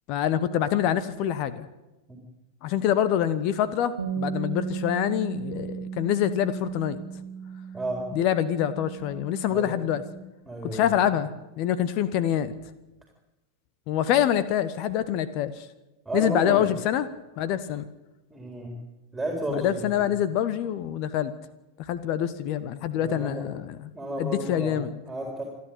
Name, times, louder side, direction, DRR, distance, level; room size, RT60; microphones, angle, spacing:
voice 1, 0.1-1.7 2.6-7.0 8.1-10.0 10.6-11.3 11.6-12.5 13.9-15.6 16.1-17.1 17.4-17.9 19.5-21.3 21.9-23.9 24.2-25.0, left 10 dB, 45° left, 15 dB, 1.1 m, -25 dB
Bass guitar, 4.0-10.2, right 7 dB, 70° right, 1.9 m, -36 dB
voice 2, 10.5-10.9 16.1-16.7 18.3-18.7 19.1-20.1 22.9-23.4 23.9-24.7 25.1-25.4, right 1 dB, 5° right, 1 dB, 4.1 m, -32 dB
28.0 x 10.5 x 9.1 m, 1.0 s
figure-of-eight pair, 90°, 0 cm